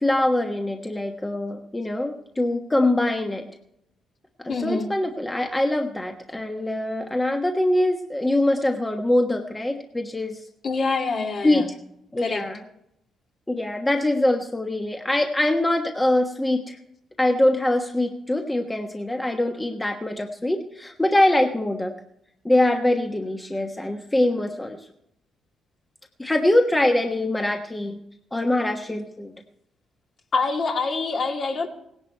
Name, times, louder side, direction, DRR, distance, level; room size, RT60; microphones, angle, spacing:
voice 1, 0.0-3.5 4.4-10.4 11.4-11.7 12.1-12.6 13.5-16.8 17.2-21.9 22.4-24.8 26.2-28.0 28.3-29.3, left 1 dB, 15° left, 3 dB, 1.2 m, -23 dB
voice 2, 4.5-4.9 10.6-11.7 12.2-12.4 30.3-31.7, left 4 dB, 50° left, 2 dB, 2.4 m, -25 dB
17.5 x 11.0 x 4.5 m, 0.77 s
cardioid pair, 90°, 0 cm